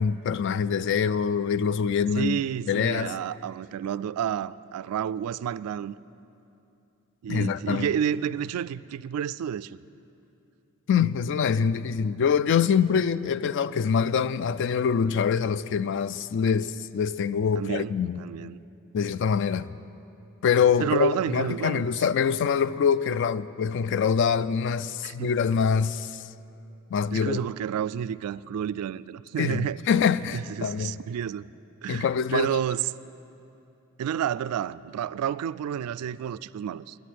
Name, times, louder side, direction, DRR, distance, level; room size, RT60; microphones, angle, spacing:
voice 1, 0.0-2.4 2.7-3.1 7.3-7.9 10.9-18.2 18.9-19.8 20.4-26.3 26.9-27.4 29.4-31.0 31.9-32.6, left 6 dB, 55° left, 0.3 m, -25 dB
voice 2, 2.2-5.9 7.2-9.8 17.5-18.6 20.8-22.0 25.0-25.3 27.1-29.8 30.3-31.5 31.8-32.1 32.3-32.9 34.0-37.0, right 9 dB, 85° right, 0.3 m, -30 dB
11.5 x 9.1 x 9.2 m
head